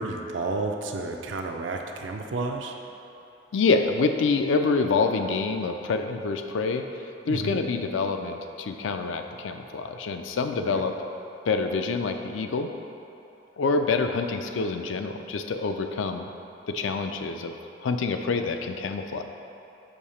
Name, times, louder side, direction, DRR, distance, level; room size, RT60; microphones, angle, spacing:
voice 1, 0.0-2.7 7.3-7.6 10.6-10.8, right 3 dB, 80° right, 3 dB, 0.5 m, -31 dB
voice 2, 3.5-6.9 7.3-11.0 11.5-12.7 13.6-16.3 16.7-17.5 17.8-19.2, left 4 dB, 85° left, 6 dB, 0.4 m, -26 dB
6.6 x 2.8 x 5.6 m, 3.0 s
head